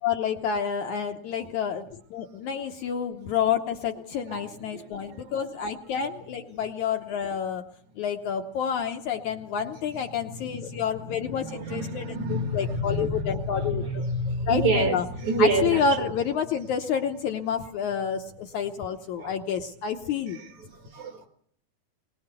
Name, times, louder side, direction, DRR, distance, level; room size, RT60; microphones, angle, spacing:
voice 1, 0.0-7.6 8.0-14.0 14.5-15.1 15.4-20.4, left 7 dB, 70° left, 1.9 m, -29 dB
voice 2, 4.3-5.2 11.1-15.8 19.2-19.3 20.9-21.3, right 2 dB, 55° right, 2.6 m, -28 dB
22.0 x 19.5 x 6.8 m
omnidirectional pair, 4.4 m